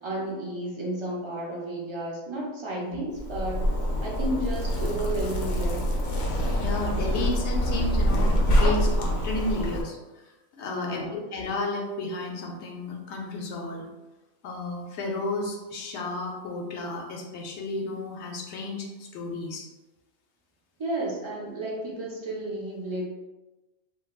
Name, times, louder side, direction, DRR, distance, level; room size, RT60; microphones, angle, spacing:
voice 1, 0.0-3.6 4.0-5.8 10.7-11.2 20.8-23.0, right 1 dB, 45° right, -4 dB, 0.3 m, -32 dB
Zipper (clothing), 3.2-9.8, equal, 85° left, 1.0 m, -25 dB
voice 2, 6.5-10.0 10.5-13.9 14.4-19.7, left 2 dB, 65° left, 1 dB, 0.8 m, -32 dB
3.8 x 2.2 x 2.3 m, 1.1 s
omnidirectional pair, 1.3 m